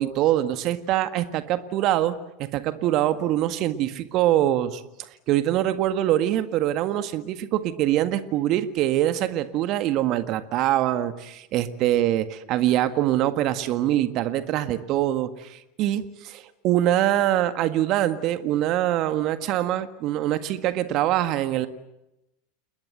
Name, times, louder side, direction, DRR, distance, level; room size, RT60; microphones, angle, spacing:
voice 1, 0.0-2.2 2.5-21.7, right 13 dB, 50° right, 10 dB, 1.7 m, -24 dB
29.5 x 20.5 x 8.0 m, 0.90 s
hypercardioid pair, 85°, 0 cm